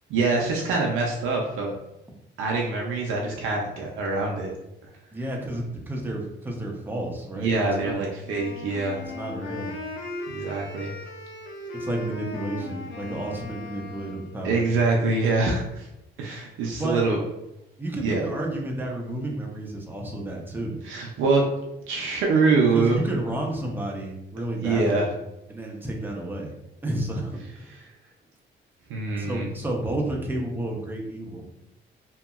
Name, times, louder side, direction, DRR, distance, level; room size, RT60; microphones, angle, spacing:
voice 1, 0.1-1.7 2.4-4.5 7.4-9.0 10.3-10.9 14.4-15.9 16.2-17.2 18.0-18.2 20.8-21.4 21.9-23.0 24.6-25.0 28.9-29.5, right 3 dB, 90° right, -1 dB, 0.5 m, -24 dB
voice 2, 5.1-7.5 7.8-8.0 9.0-9.7 11.7-14.7 16.6-17.0 17.8-20.8 22.7-25.1 25.5-26.5 26.8-27.8 29.2-31.4, right 1 dB, 10° right, -1 dB, 0.7 m, -31 dB
Wind instrument woodwind instrument, 8.2-14.4, left 2 dB, 75° left, 0.6 m, -37 dB
2.8 x 2.6 x 2.3 m, 0.91 s
cardioid pair, 90°, 20 cm